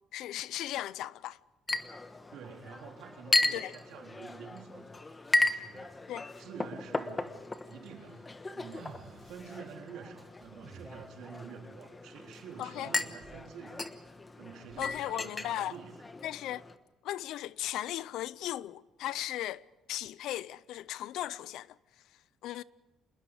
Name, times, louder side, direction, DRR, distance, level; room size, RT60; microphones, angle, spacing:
voice 1, 0.1-1.4 3.5-3.7 6.1-6.3 12.6-12.9 14.8-15.7 16.2-16.6 17.0-19.6 19.9-21.7 22.4-22.6, left 13 dB, 80° left, 0.6 m, -36 dB
Chink clink, 1.7-16.7, left 2 dB, 15° left, 1.2 m, -36 dB
voice 2, 2.3-6.0 6.4-7.4 7.7-13.9 14.4-16.1, right 6 dB, 80° right, 3.8 m, -48 dB
sound 1, 7.9-9.5 10.4-11.3 12.8-12.9 13.2-14.1 14.7-15.2, right 5 dB, 40° right, 4.7 m, -54 dB
26.5 x 21.0 x 5.0 m
cardioid pair, 145°, 0 cm